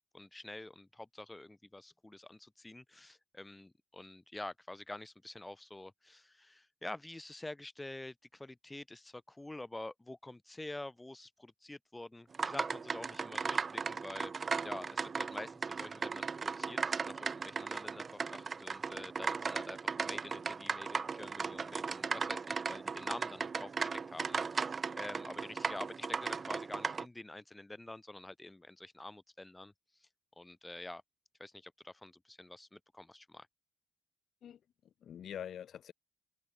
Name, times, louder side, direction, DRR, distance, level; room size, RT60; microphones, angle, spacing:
voice 1, 0.1-14.3 14.6-29.7 30.4-31.0 31.4-33.5, left 2 dB, 10° left, 3.2 m, -47 dB
sound 1, 12.3-27.1, right 5 dB, 35° right, 1.1 m, -37 dB
voice 2, 34.4-35.9, left 9 dB, 65° left, 3.0 m, -46 dB
open air
cardioid pair, 90°, 0 cm